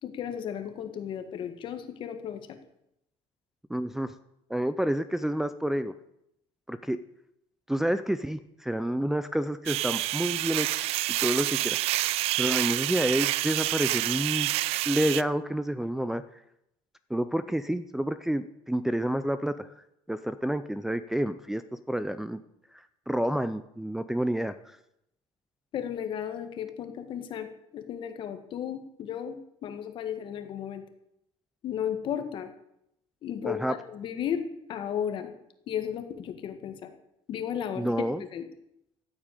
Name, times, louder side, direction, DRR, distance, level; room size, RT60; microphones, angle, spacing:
voice 1, 0.0-2.6 25.7-27.5 27.7-30.8 31.6-32.5 33.2-34.4 34.7-35.3 35.7-36.9 37.3-37.9 38.3-38.4, left 9 dB, 45° left, 8 dB, 1.8 m, -34 dB
voice 2, 3.7-4.1 4.5-5.9 6.7-7.0 7.7-11.8 12.4-14.5 14.9-16.2 17.1-19.7 20.1-21.6 21.9-22.4 23.1-24.5 33.4-33.7 37.8-38.2, right 1 dB, 5° right, 10 dB, 0.5 m, -29 dB
sound 1, 9.7-15.2, right 16 dB, 60° right, 0.5 m, -28 dB
15.0 x 8.7 x 9.1 m, 0.81 s
cardioid pair, 145°, 11 cm